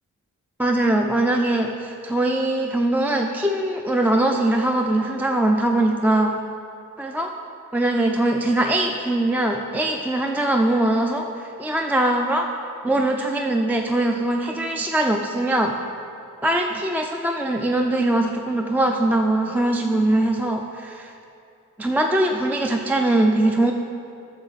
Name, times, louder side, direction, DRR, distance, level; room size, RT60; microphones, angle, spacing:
voice 1, 0.6-6.3 7.0-7.3 7.7-12.5 12.8-15.7 16.4-21.1 21.8-23.7, right 1 dB, 5° right, 2 dB, 0.4 m, -21 dB
12.0 x 6.9 x 4.1 m, 2.6 s
wide cardioid pair, 105°, 34 cm